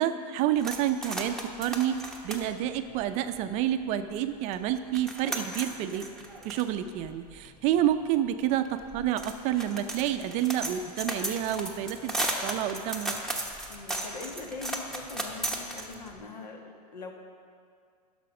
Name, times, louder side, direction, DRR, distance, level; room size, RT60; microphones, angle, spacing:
voice 1, 0.0-2.0 2.2-6.0 6.4-12.1 12.4-13.2, right 11 dB, 35° right, 9 dB, 0.5 m, -29 dB
sound 1, 0.6-3.8 4.2-4.3 4.5-16.2, right 1 dB, ahead, 0.9 m, -36 dB
voice 2, 13.7-17.1, left 3 dB, 85° left, 2 dB, 1.6 m, -42 dB
11.0 x 6.2 x 5.9 m, 2.2 s
hypercardioid pair, 130°, 21 cm